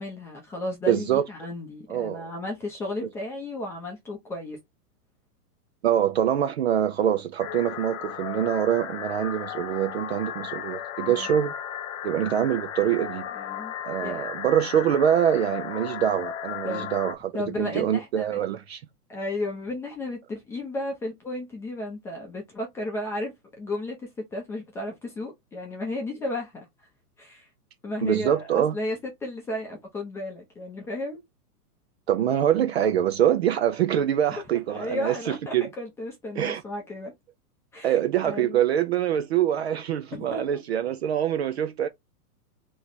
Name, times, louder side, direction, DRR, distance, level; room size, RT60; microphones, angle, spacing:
voice 1, 0.0-4.6 11.1-11.3 13.3-13.7 14.0-14.3 16.6-16.9 17.3-18.3 19.1-26.7 27.2-27.5 27.8-31.2 34.3-34.4 34.7-37.1 37.7-38.6 40.1-40.6, left 1 dB, 5° left, 0.7 m, -34 dB
voice 2, 0.9-1.3 1.9-2.3 5.8-11.6 12.0-13.3 13.8-18.8 28.0-28.8 32.1-35.7 36.4-36.6 37.8-41.9, right 10 dB, 45° right, 0.5 m, -24 dB
sound 1, 7.4-17.1, left 9 dB, 55° left, 0.8 m, -35 dB
3.2 x 3.1 x 4.0 m
hypercardioid pair, 160°, 47 cm